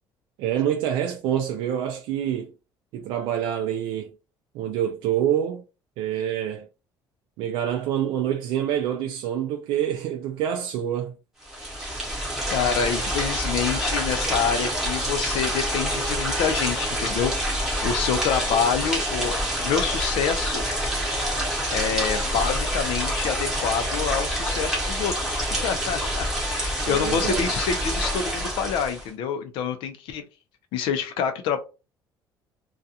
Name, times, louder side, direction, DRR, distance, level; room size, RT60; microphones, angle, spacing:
voice 1, 0.4-2.5 2.9-4.1 4.5-5.6 6.0-6.7 7.4-11.1 26.9-27.5, right 10 dB, 75° right, 0.4 m, -26 dB
sound 1, 11.4-29.1, equal, 5° right, 0.8 m, -27 dB
voice 2, 12.5-20.6 21.7-30.2 30.7-31.6, left 7 dB, 75° left, 0.5 m, -27 dB
2.4 x 2.3 x 2.7 m
cardioid pair, 175°, 9 cm